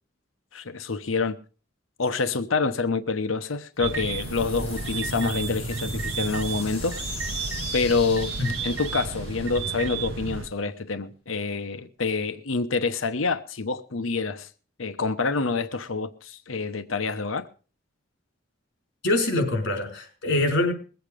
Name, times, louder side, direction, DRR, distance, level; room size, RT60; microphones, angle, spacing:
voice 1, 0.5-1.4 2.0-7.0 7.7-8.3 8.6-14.5 14.8-17.5, left 4 dB, 85° left, 1.0 m, -27 dB
sound 1, 3.7-10.6, left 3 dB, 30° left, 4.1 m, -40 dB
sound 2, 3.8-10.5, right 4 dB, 75° right, 0.9 m, -32 dB
voice 2, 19.0-20.7, left 2 dB, 60° left, 4.6 m, -24 dB
21.0 x 8.1 x 5.1 m
head